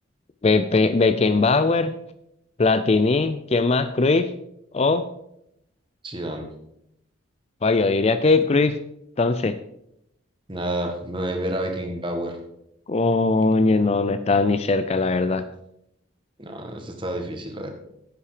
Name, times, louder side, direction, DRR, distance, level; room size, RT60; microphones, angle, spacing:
voice 1, 0.4-1.9 2.6-4.3 4.7-5.0 7.6-8.8 9.2-9.6 12.9-15.4, left 3 dB, 30° left, 12 dB, 0.4 m, -20 dB
voice 2, 6.0-6.5 10.5-12.4 16.4-17.7, right 1 dB, 25° right, 4 dB, 1.7 m, -29 dB
10.0 x 8.6 x 5.0 m, 0.78 s
head